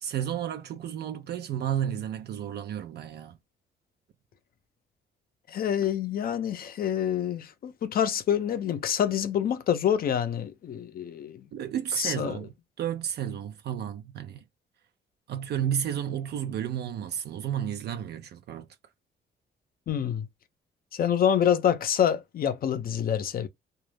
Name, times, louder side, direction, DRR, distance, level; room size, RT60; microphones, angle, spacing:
voice 1, 0.0-3.4 11.5-12.5 12.8-14.4 15.3-18.7, right 9 dB, 60° right, 0.4 m, -32 dB
voice 2, 5.5-11.4 12.0-12.4 19.9-20.3 20.9-23.5, left 9 dB, 50° left, 0.5 m, -27 dB
2.2 x 2.0 x 3.2 m
cardioid pair, 95°, 19 cm